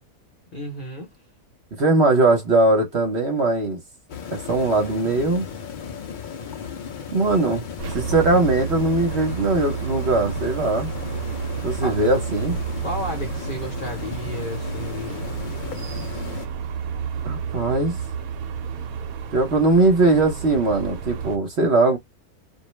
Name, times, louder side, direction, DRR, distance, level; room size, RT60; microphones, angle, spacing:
voice 1, 0.5-1.1 11.8-12.0 12.8-15.3, left 1 dB, 45° left, 0.8 m, -33 dB
voice 2, 1.7-3.8 4.3-5.4 7.1-7.7 7.9-10.9 11.6-12.6 17.2-18.0 19.3-22.0, right 2 dB, 50° right, 1.0 m, -20 dB
sound 1, 4.1-16.5, left 7 dB, 70° left, 0.4 m, -35 dB
sound 2, 7.8-21.4, right 7 dB, 75° right, 1.0 m, -31 dB
2.6 x 2.0 x 3.0 m
omnidirectional pair, 1.6 m